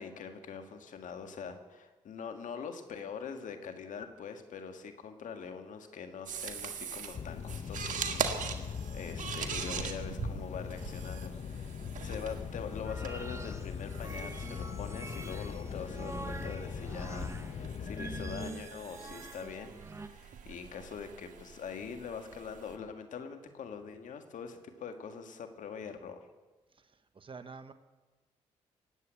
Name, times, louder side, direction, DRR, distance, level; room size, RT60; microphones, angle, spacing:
voice 1, 0.0-19.7 20.0-26.3, left 6 dB, 70° left, 7 dB, 1.8 m, -43 dB
sound 1, 6.3-22.8, right 7 dB, 70° right, 1.7 m, -42 dB
sound 2, 7.1-18.5, left 7 dB, 50° left, 0.9 m, -40 dB
sound 3, 12.8-20.1, right 2 dB, 20° right, 1.5 m, -45 dB
voice 2, 20.4-20.7 26.7-27.7, right 4 dB, 40° right, 10 dB, 1.3 m, -50 dB
18.0 x 8.3 x 9.1 m, 1.2 s
supercardioid pair, 50°, 14 cm